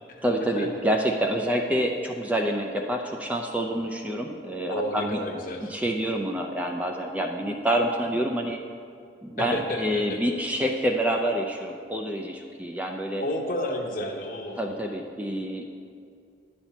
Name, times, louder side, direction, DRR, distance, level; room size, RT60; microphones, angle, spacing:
voice 1, 0.2-5.2 5.7-8.6 9.2-13.2 14.6-15.7, right 1 dB, 10° right, 2 dB, 0.4 m, -27 dB
voice 2, 4.7-5.7 9.4-10.2 13.2-14.7, left 1 dB, 50° left, 2 dB, 0.9 m, -31 dB
10.0 x 4.3 x 6.9 m, 2.4 s
head